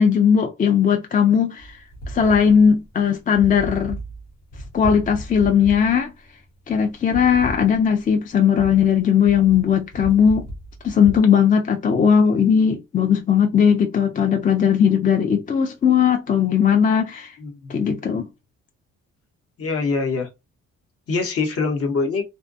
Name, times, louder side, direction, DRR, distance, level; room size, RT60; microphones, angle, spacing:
voice 1, 0.0-1.8 2.1-4.0 4.7-6.1 6.7-10.5 10.8-17.3 17.7-18.3, left 7 dB, 30° left, 0.3 m, -18 dB
sound 1, 1.6-11.2, right 1 dB, 85° left, 1.1 m, -35 dB
voice 2, 17.4-17.8 19.6-20.3 21.1-22.2, left 4 dB, 50° left, 0.9 m, -24 dB
2.5 x 2.1 x 2.5 m
cardioid pair, 90°, 30 cm